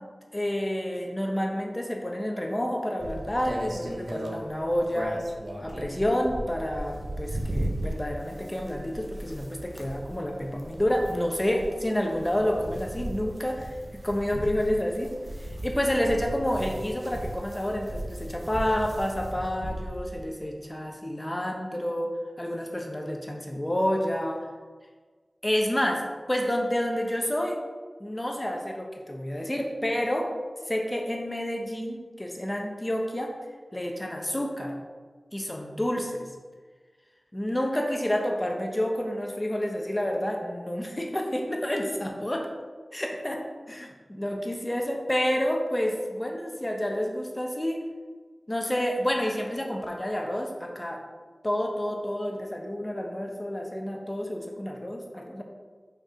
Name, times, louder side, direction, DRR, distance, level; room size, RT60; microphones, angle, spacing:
voice 1, 0.0-5.2 5.6-15.1 15.4-24.5 25.4-26.0 26.3-27.6 28.0-30.3 30.7-33.3 33.7-34.8 35.3-36.3 37.3-42.5 42.9-43.4 43.7-47.8 48.5-51.0 51.4-55.4, equal, 20° left, 1 dB, 1.0 m, -29 dB
sound 1, 3.0-20.2, right 1 dB, 50° right, 1.0 m, -37 dB
5.6 x 4.6 x 5.0 m, 1.4 s
wide cardioid pair, 75°, 0 cm